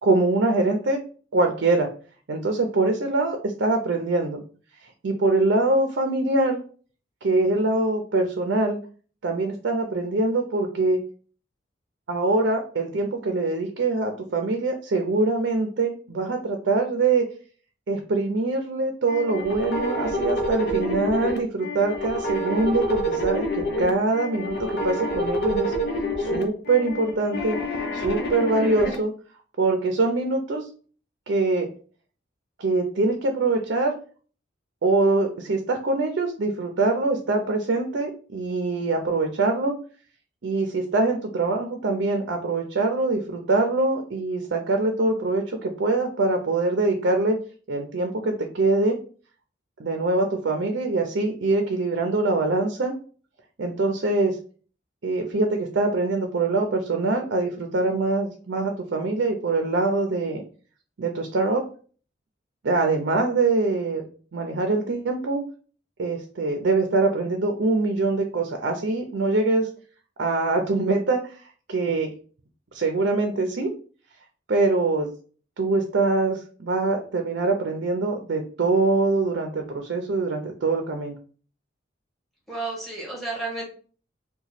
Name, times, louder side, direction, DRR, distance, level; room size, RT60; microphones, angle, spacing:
voice 1, 0.0-1.0 1.3-1.9 2.3-4.4 5.0-6.6 7.2-8.8 9.2-11.0 12.1-17.3 17.9-25.7 26.2-27.6 27.9-29.1 29.6-30.7 31.3-31.7 32.6-33.9 34.8-39.7 40.4-47.4 47.7-49.0 49.8-52.9 53.6-54.4 55.0-60.4 61.0-61.6 62.6-64.0 64.3-65.4 66.0-69.7 70.2-71.4 71.7-72.1 72.7-73.7 74.5-75.1 75.6-81.1, right 3 dB, 65° right, 4 dB, 0.5 m, -23 dB
sound 1, 19.1-28.9, equal, 60° left, 0.7 m, -28 dB
voice 2, 82.5-83.6, right 3 dB, ahead, -3 dB, 1.3 m, -31 dB
2.9 x 2.2 x 4.1 m, 0.41 s
head